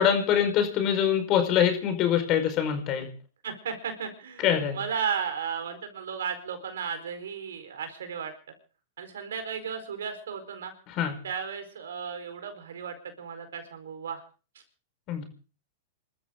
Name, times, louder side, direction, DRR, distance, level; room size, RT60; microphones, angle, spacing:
voice 1, 0.0-3.1 4.4-4.8 11.0-11.2 15.1-15.3, left 9 dB, 40° left, 7 dB, 5.1 m, -24 dB
voice 2, 3.4-8.3 9.0-10.7 11.2-14.2, right 7 dB, 80° right, 7 dB, 4.6 m, -34 dB
27.5 x 13.5 x 3.9 m, 0.38 s
hypercardioid pair, 120°, 0 cm